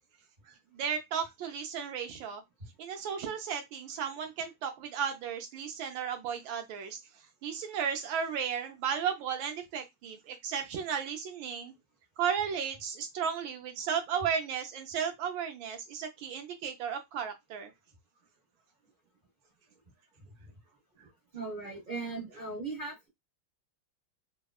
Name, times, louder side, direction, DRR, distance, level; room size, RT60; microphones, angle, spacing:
voice 1, 0.5-2.4 2.8-7.0 7.4-11.7 12.2-17.7, right 7 dB, 75° right, 1.2 m, -34 dB
voice 2, 20.2-20.5 21.0-23.1, right 3 dB, 60° right, 0.5 m, -39 dB
3.4 x 2.2 x 2.2 m
omnidirectional pair, 2.3 m